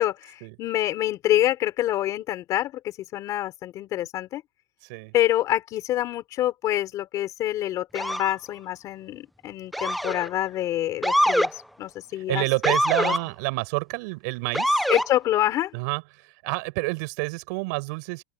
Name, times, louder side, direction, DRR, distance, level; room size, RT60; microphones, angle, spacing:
voice 1, 0.0-4.4 5.1-12.5 13.0-13.1 14.9-15.7, left 13 dB, 30° left, 4.1 m, -26 dB
voice 2, 4.8-5.1 12.1-14.8 15.7-18.2, right 28 dB, 50° right, 6.4 m, -29 dB
Motor vehicle (road) / Siren, 7.9-8.3 9.7-10.3 11.0-11.5 12.6-13.2 14.5-15.1, equal, ahead, 0.5 m, -23 dB
open air
supercardioid pair, 165°, 12 cm